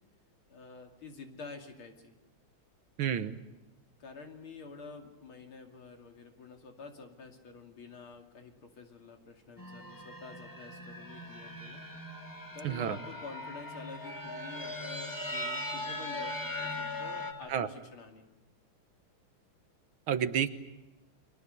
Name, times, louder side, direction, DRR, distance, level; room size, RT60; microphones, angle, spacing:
voice 1, 0.5-2.2 4.0-11.8 12.5-18.3, left 4 dB, 75° left, 4 dB, 3.4 m, -48 dB
voice 2, 3.0-3.4 12.6-13.0 17.5-17.7 20.1-20.5, right 9 dB, 75° right, 12 dB, 1.9 m, -30 dB
sound 1, 9.6-17.3, left 1 dB, 10° left, 2.3 m, -40 dB
30.0 x 23.5 x 6.8 m, 1.0 s
omnidirectional pair, 2.3 m